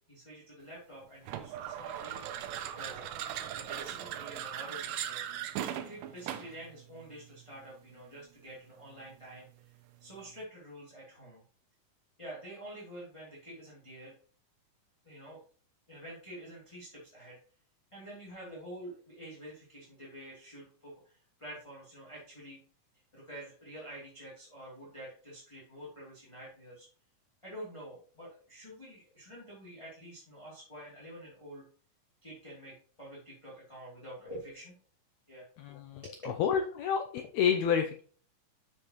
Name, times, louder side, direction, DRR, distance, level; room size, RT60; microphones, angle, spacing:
voice 1, 0.1-2.3 2.7-5.3 5.7-9.5 10.0-11.4 12.2-14.1 15.0-15.4 15.9-17.4 17.9-22.6 23.1-26.9 27.4-31.6 32.2-34.7 35.3-35.5 36.0-36.1, right 1 dB, 10° left, -7 dB, 2.4 m, -48 dB
sound 1, 1.2-6.6, right 10 dB, 80° right, 2.3 m, -38 dB
voice 2, 35.6-36.0 36.4-38.0, left 7 dB, 80° left, 6 dB, 1.6 m, -29 dB
7.4 x 6.9 x 3.0 m, 0.42 s
omnidirectional pair, 3.9 m